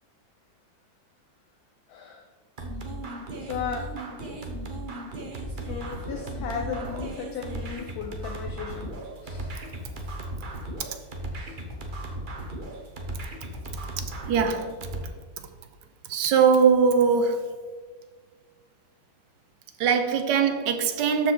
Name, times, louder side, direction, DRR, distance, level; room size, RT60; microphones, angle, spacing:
voice 1, 1.9-2.3 3.4-4.0 5.5-9.5 11.3-11.5, left 7 dB, 65° left, 1.0 m, -36 dB
sound 1, 2.6-15.1, right 1 dB, 35° right, 0.8 m, -36 dB
voice 2, 9.1-9.5 10.8-11.0 14.0-14.8 16.1-17.5 19.8-21.3, right 6 dB, 70° right, 1.3 m, -22 dB
13.0 x 4.9 x 3.9 m
omnidirectional pair, 2.1 m